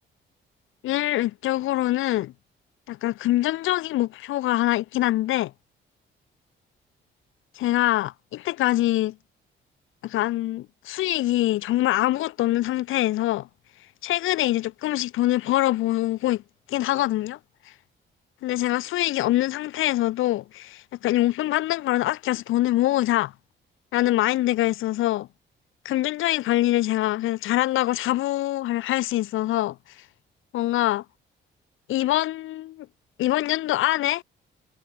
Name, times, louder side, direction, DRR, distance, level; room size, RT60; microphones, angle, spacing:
voice 1, 0.8-2.3 2.9-5.5 7.6-9.1 10.0-13.5 14.0-16.4 16.7-17.4 18.4-23.3 23.9-25.3 25.8-29.8 30.5-31.0 31.9-32.9 33.2-34.2, left 15 dB, 90° left, 4.2 m, -24 dB
cardioid pair, 90°, 20 cm